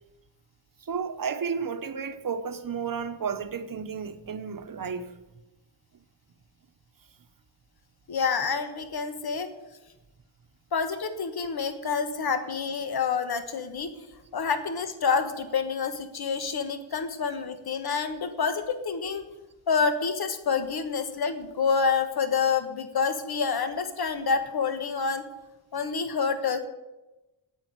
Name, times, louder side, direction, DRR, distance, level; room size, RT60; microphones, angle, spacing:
voice 1, 0.8-5.1, right 6 dB, 45° right, 1.0 m, -32 dB
voice 2, 8.1-9.5 10.7-13.9 14.3-19.2 19.7-25.2 25.7-26.6, left 5 dB, 55° left, 1.3 m, -28 dB
9.3 x 9.2 x 9.4 m
wide cardioid pair, 155°, 45 cm